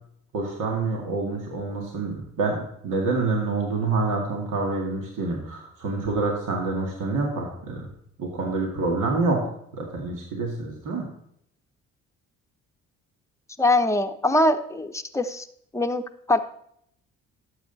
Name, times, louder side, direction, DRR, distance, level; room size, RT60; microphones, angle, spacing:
voice 1, 0.3-7.9 8.2-9.4 9.7-11.1, right 3 dB, 65° right, 0 dB, 2.3 m, -27 dB
voice 2, 13.6-15.5 15.7-16.4, left 1 dB, 10° left, 6 dB, 0.9 m, -23 dB
12.0 x 7.8 x 4.1 m, 0.71 s
supercardioid pair, 65°, 33 cm